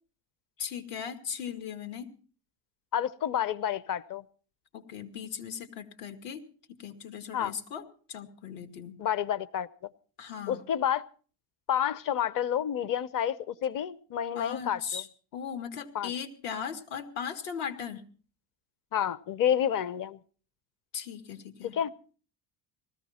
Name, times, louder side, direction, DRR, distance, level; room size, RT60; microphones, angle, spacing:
voice 1, 0.6-2.1 4.7-6.4 6.8-9.0 10.2-10.6 14.4-15.1 15.3-18.0 20.9-21.8, left 7 dB, 75° left, 7 dB, 2.3 m, -38 dB
voice 2, 2.9-4.2 7.3-7.5 9.0-9.7 10.5-11.1 11.7-15.0 15.9-16.1 18.9-20.2 21.7-21.9, left 9 dB, 40° left, 18 dB, 0.8 m, -29 dB
19.5 x 14.5 x 4.3 m, 0.42 s
supercardioid pair, 95°, 49 cm